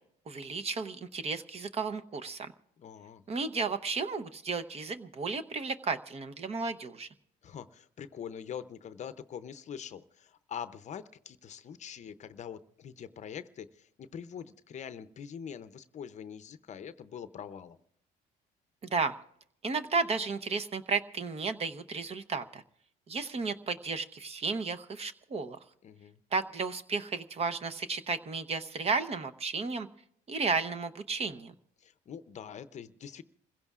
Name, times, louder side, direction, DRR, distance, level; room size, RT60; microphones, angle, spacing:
voice 1, 0.3-2.5 3.3-7.1 18.8-19.1 19.6-22.6 23.1-25.6 26.3-29.9 30.3-31.5, right 4 dB, 35° right, 9 dB, 0.9 m, -33 dB
voice 2, 2.8-3.2 7.4-17.8 25.8-26.2 31.8-33.2, left 8 dB, 45° left, 12 dB, 0.6 m, -44 dB
28.0 x 16.0 x 2.4 m, 0.71 s
cardioid pair, 110°, 17 cm